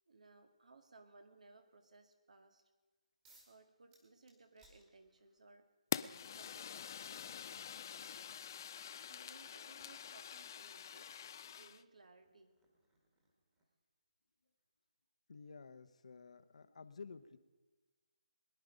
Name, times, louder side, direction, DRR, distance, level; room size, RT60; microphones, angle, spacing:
voice 1, 0.1-2.6 3.5-5.7 6.2-8.5 9.1-12.6, right 3 dB, 70° right, 7 dB, 2.0 m, -63 dB
sound 1, 3.2-3.6 3.9-5.5 6.6-6.7 7.2-13.9, right 2 dB, 15° right, 2.0 m, -72 dB
Fire, 5.9-11.8, left 8 dB, 30° left, 0.4 m, -45 dB
voice 2, 15.3-17.4, left 5 dB, 60° left, 11 dB, 0.9 m, -53 dB
21.5 x 10.5 x 5.2 m, 1.3 s
hypercardioid pair, 170°, 4 cm